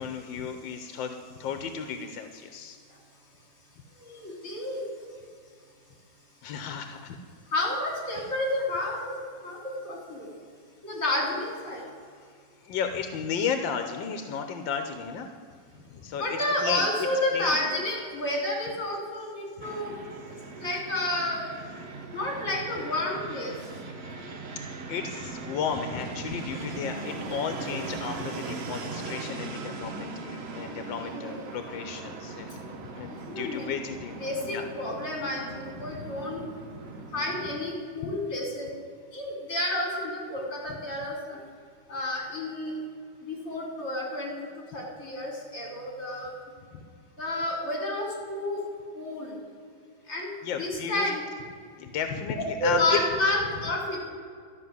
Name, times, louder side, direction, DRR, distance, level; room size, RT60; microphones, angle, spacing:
voice 1, 0.0-2.8 6.4-7.2 8.2-8.3 12.6-15.3 15.7-16.9 17.3-17.6 19.6-19.7 24.5-34.1 34.5-34.7 35.9-36.0 50.4-51.1 51.8-53.0, left 7 dB, 90° left, 7 dB, 1.5 m, -34 dB
voice 2, 4.0-5.1 7.5-9.2 9.4-9.6 9.8-10.3 10.8-11.8 16.2-19.9 20.6-21.4 22.1-23.5 30.5-30.6 31.0-31.4 33.3-33.7 34.2-36.4 37.1-38.7 39.1-41.4 41.9-42.7 43.3-46.3 47.2-48.6 48.9-49.4 50.1-50.3 50.6-51.2 52.3-54.1, left 1 dB, 45° left, -1 dB, 3.7 m, -30 dB
Fixed-wing aircraft airplane, 19.6-37.6, right 3 dB, 45° right, 1.0 m, -39 dB
12.5 x 6.1 x 9.4 m, 2.2 s
omnidirectional pair, 2.0 m